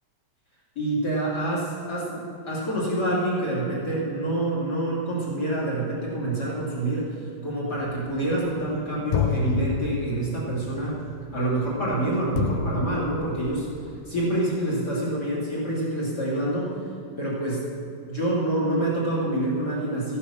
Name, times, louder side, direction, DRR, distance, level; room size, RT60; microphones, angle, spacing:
voice 1, 0.8-7.1 7.4-11.0 11.3-13.7 14.1-16.8 17.2-17.7 18.0-20.2, right 1 dB, 30° left, -6 dB, 2.5 m, -27 dB
Industrial Drums bang, 7.8-8.8 9.1-14.0, left 7 dB, 80° left, 2.4 m, -30 dB
13.5 x 9.7 x 6.3 m, 2.6 s
omnidirectional pair, 4.6 m